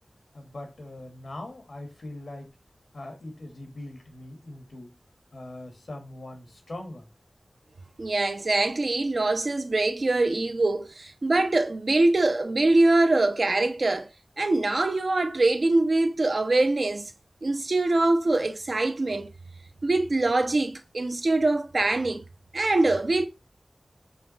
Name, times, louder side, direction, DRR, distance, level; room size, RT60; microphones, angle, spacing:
voice 1, 0.3-2.5 2.9-5.0 5.3-7.1, left 1 dB, 80° left, 1.3 m, -41 dB
voice 2, 8.0-14.1 14.4-17.1 17.4-19.3 19.8-22.2 22.5-23.3, right 2 dB, 65° right, 0.7 m, -23 dB
5.6 x 2.3 x 3.9 m
cardioid pair, 40°, 0 cm